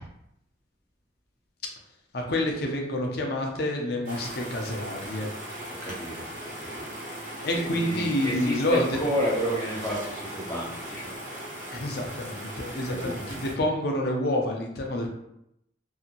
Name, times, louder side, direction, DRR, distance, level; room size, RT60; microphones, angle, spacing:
voice 1, 2.1-5.3 7.4-9.0 11.7-15.1, left 1 dB, 55° left, 1 dB, 0.5 m, -28 dB
sound 1, 4.0-13.5, right 1 dB, 45° right, 0.7 m, -39 dB
voice 2, 5.8-6.3 6.6-6.8 7.2-11.1 12.9-13.1, equal, 15° left, -6 dB, 0.8 m, -31 dB
2.7 x 2.7 x 2.5 m, 0.79 s
head